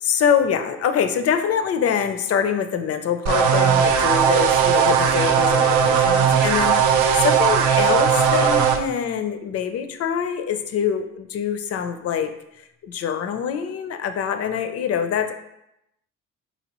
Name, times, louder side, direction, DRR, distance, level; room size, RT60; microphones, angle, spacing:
voice 1, 0.0-12.3 12.6-15.3, left 8 dB, 55° left, 9 dB, 0.4 m, -24 dB
sound 1, 3.3-8.8, right 7 dB, 85° right, 0.5 m, -18 dB
3.9 x 3.0 x 2.9 m, 0.83 s
cardioid pair, 90°, 30 cm